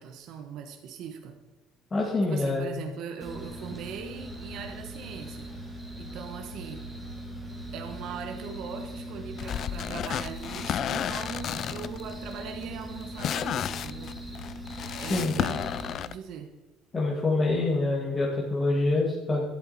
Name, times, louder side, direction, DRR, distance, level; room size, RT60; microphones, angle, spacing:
voice 1, 0.0-1.3 2.3-5.5 6.0-6.9 7.7-14.2 14.8-15.7 16.0-16.5, right 7 dB, 55° right, 4 dB, 1.4 m, -40 dB
voice 2, 1.9-2.6 15.1-15.4 16.9-19.4, left 2 dB, 20° left, -4 dB, 2.2 m, -26 dB
sound 1, 3.2-15.9, equal, 5° right, 2.6 m, -40 dB
sound 2, 9.4-16.1, left 9 dB, 40° left, 0.4 m, -33 dB
13.0 x 11.5 x 4.3 m, 1.1 s
cardioid pair, 160°, 0 cm